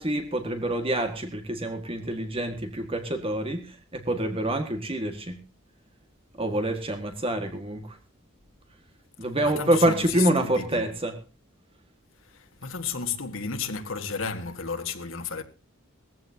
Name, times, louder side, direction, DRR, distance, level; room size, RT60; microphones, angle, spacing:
voice 1, 0.0-3.7 3.9-5.4 6.4-8.0 9.2-11.2, right 1 dB, 30° right, 1.7 m, -26 dB
voice 2, 9.4-10.9 12.3-15.4, left 5 dB, 75° left, 1.6 m, -33 dB
19.0 x 15.0 x 2.8 m
head